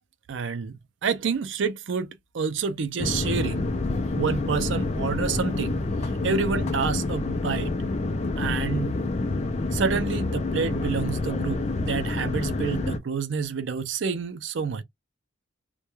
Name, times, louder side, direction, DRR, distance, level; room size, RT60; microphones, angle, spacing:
voice 1, 0.3-3.7 4.2-5.8 6.2-7.7 8.4-9.0 9.7-14.8, right 5 dB, 75° right, 0.4 m, -28 dB
sound 1, 3.0-13.0, left 2 dB, 35° left, 0.4 m, -28 dB
2.2 x 2.2 x 2.9 m
head